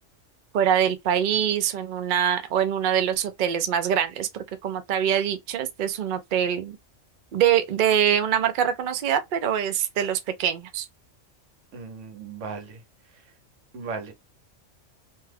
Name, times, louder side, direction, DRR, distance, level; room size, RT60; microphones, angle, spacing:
voice 1, 0.5-6.8 7.3-10.9, right 9 dB, 60° right, 0.5 m, -24 dB
voice 2, 11.7-12.8 13.7-14.1, right 4 dB, 75° right, 1.2 m, -36 dB
2.6 x 2.2 x 3.2 m
omnidirectional pair, 1.3 m